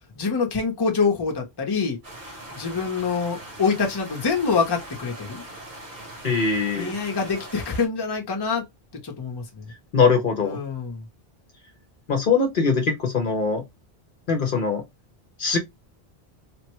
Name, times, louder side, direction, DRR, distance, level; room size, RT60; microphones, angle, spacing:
voice 1, 0.2-2.0 2.5-5.4 6.7-8.6 9.0-9.6 10.4-11.0, left 5 dB, 25° left, 0.7 m, -25 dB
sound 1, 2.0-7.9, right 1 dB, 60° right, 1.4 m, -41 dB
voice 2, 6.2-7.0 9.9-10.6 12.1-13.6 14.3-14.8 15.4-15.6, left 5 dB, 55° left, 0.8 m, -22 dB
3.3 x 2.1 x 2.9 m
omnidirectional pair, 1.1 m